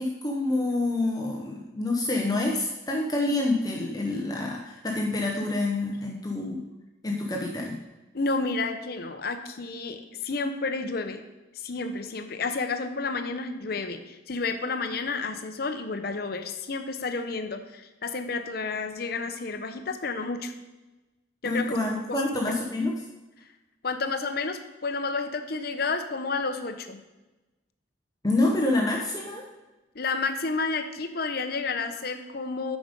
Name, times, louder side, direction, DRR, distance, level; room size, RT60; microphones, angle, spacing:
voice 1, 0.0-6.6 7.0-7.8 21.4-22.9 28.2-29.4, left 2 dB, 20° left, -1 dB, 0.8 m, -27 dB
voice 2, 8.1-11.2 11.5-20.5 21.4-22.5 23.8-27.0 29.9-32.8, left 3 dB, 55° left, 8 dB, 0.7 m, -31 dB
8.5 x 5.2 x 5.2 m, 1.1 s
head